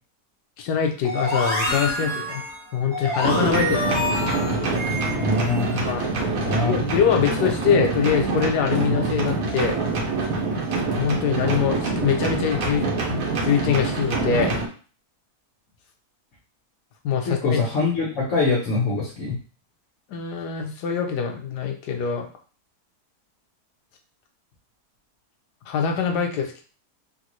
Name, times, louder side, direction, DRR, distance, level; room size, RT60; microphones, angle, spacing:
voice 1, 0.6-2.4 2.7-4.0 5.9-6.1 6.6-9.8 11.0-14.6 17.0-17.6 20.1-22.3 25.7-26.6, left 7 dB, 85° left, 4 dB, 1.2 m, -24 dB
sound 1, 1.0-5.9, left 1 dB, 15° left, 1.4 m, -27 dB
sound 2, 3.2-14.7, right 3 dB, 65° right, 1.1 m, -25 dB
voice 2, 5.1-5.8 6.4-6.7 7.2-7.3 17.2-19.4, left 3 dB, 55° left, -3 dB, 1.1 m, -24 dB
3.6 x 2.4 x 3.0 m, 0.38 s
omnidirectional pair, 1.7 m